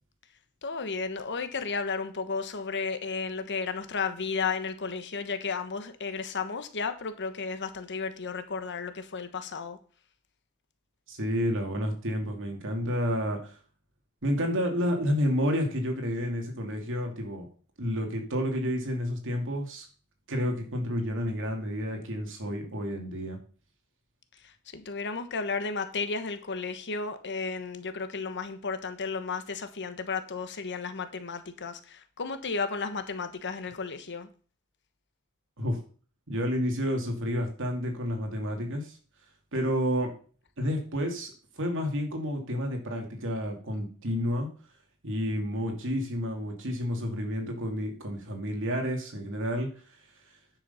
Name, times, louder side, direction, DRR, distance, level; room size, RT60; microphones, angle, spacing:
voice 1, 0.6-9.8 24.3-34.3, left 4 dB, 55° left, 10 dB, 1.2 m, -33 dB
voice 2, 11.1-13.6 14.2-17.5 17.8-19.9 20.3-23.4 35.6-35.8 36.3-39.0 39.5-40.1 40.6-44.5 45.0-50.4, equal, 60° right, 3 dB, 2.7 m, -30 dB
10.0 x 6.3 x 5.6 m, 0.41 s
head